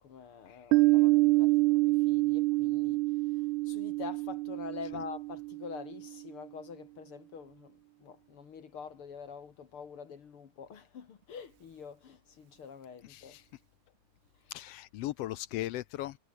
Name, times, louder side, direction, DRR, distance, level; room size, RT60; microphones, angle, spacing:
voice 1, 0.0-13.4, left 6 dB, 50° left, 2.4 m, -46 dB
Piano, 0.7-6.1, right 22 dB, 85° right, 2.0 m, -27 dB
voice 2, 13.1-13.4 14.5-16.2, left 15 dB, 75° left, 1.5 m, -38 dB
omnidirectional pair, 3.4 m